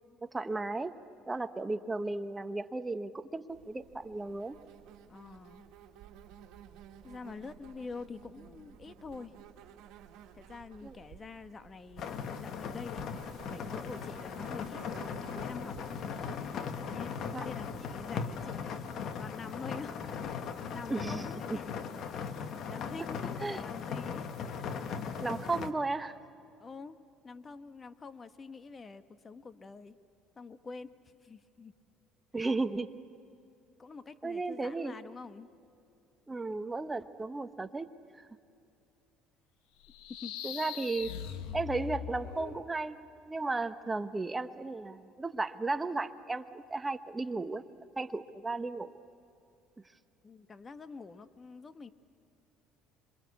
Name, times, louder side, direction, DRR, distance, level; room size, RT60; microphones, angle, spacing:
voice 1, 0.2-0.9 1.3-4.6 10.8-10.9 17.3-17.5 20.9-21.6 23.4-23.6 25.2-26.1 32.3-32.9 34.2-34.9 36.3-37.9 38.2-38.3 40.4-41.1 41.5-47.6 48.0-48.9, right 3 dB, 15° right, 9 dB, 1.1 m, -35 dB
Insect, 3.5-18.7, right 9 dB, 70° right, 2.1 m, -54 dB
voice 2, 5.1-5.7 7.0-9.3 10.4-13.1 13.5-14.8 15.2-16.2 16.7-18.8 19.2-20.2 20.7-21.7 22.1-24.3 24.6-25.0 26.6-27.0 27.2-30.0 30.3-30.9 31.2-31.7 32.4-32.5 33.8-35.5 40.2-40.3 50.2-51.9, left 4 dB, 30° left, 10 dB, 1.2 m, -46 dB
sound 1, 12.0-25.7, left 6 dB, 55° left, 1.5 m, -38 dB
sound 2, 39.8-42.7, left 10 dB, 85° left, 1.3 m, -41 dB
26.5 x 23.5 x 8.3 m, 2.6 s
supercardioid pair, 105°, 0 cm